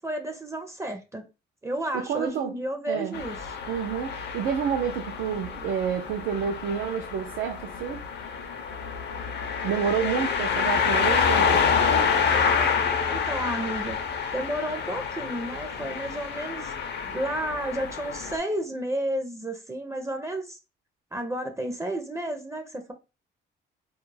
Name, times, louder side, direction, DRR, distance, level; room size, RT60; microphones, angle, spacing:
voice 1, 0.0-1.3 1.6-3.6 13.1-14.0 14.3-16.7 17.0-20.6 21.1-22.9, right 1 dB, 15° right, 0.4 m, -32 dB
voice 2, 1.9-2.5 2.9-3.2 3.7-8.0 9.6-11.6, right 7 dB, 85° right, 0.4 m, -29 dB
sound 1, 3.1-18.4, left 6 dB, 60° left, 0.5 m, -27 dB
2.3 x 2.0 x 3.1 m
cardioid pair, 90°, 20 cm